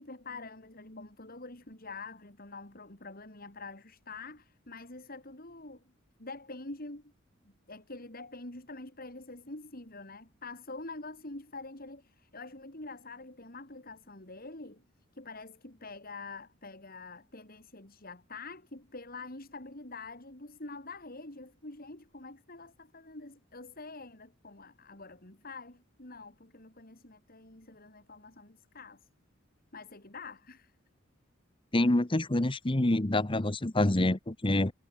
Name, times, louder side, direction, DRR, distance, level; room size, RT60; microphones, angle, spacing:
voice 1, 0.0-5.9 6.2-7.1 7.4-14.8 15.1-29.1 29.7-30.8, left 3 dB, 45° left, 4.0 m, -46 dB
voice 2, 31.7-34.7, left 1 dB, 25° left, 1.0 m, -26 dB
head